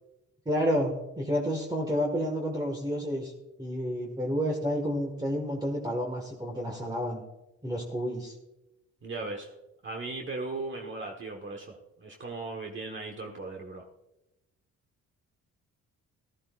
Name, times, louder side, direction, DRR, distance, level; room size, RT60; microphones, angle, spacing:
voice 1, 0.5-3.3 3.6-7.2 7.6-8.3, equal, 15° right, 0 dB, 1.8 m, -30 dB
voice 2, 9.0-9.5 9.8-13.8, right 3 dB, 40° right, 1 dB, 1.4 m, -37 dB
14.5 x 12.5 x 2.5 m, 0.97 s
cardioid pair, 90°, 30 cm